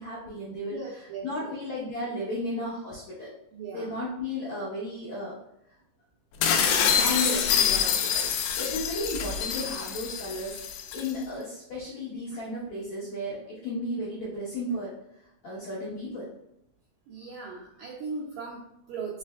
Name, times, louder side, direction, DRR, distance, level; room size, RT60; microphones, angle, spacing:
voice 1, 0.0-0.8 1.2-3.3 3.7-5.3 6.9-14.9 15.4-16.3, left 1 dB, 70° left, -9 dB, 1.7 m, -34 dB
voice 2, 0.7-1.6 3.5-3.9 7.0-7.2 17.1-19.2, right 4 dB, 85° right, -2 dB, 1.9 m, -38 dB
sound 1, 6.4-11.1, left 7 dB, 85° left, 2.0 m, -26 dB
5.5 x 3.2 x 2.3 m, 0.79 s
omnidirectional pair, 4.5 m